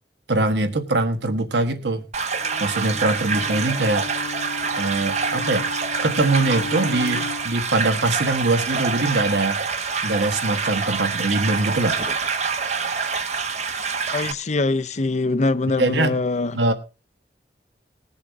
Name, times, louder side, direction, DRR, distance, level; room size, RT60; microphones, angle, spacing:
voice 1, 0.3-2.0 2.6-4.1 4.7-5.7 6.0-9.6 10.0-12.0 15.8-16.2 16.5-16.7, right 2 dB, 80° right, 1.4 m, -22 dB
sound 1, 2.1-14.3, right 5 dB, 40° right, 0.9 m, -26 dB
Bowed string instrument, 2.4-7.7, left 4 dB, 70° left, 0.9 m, -35 dB
voice 2, 14.1-16.6, left 3 dB, 40° left, 0.6 m, -23 dB
20.5 x 7.2 x 3.6 m
head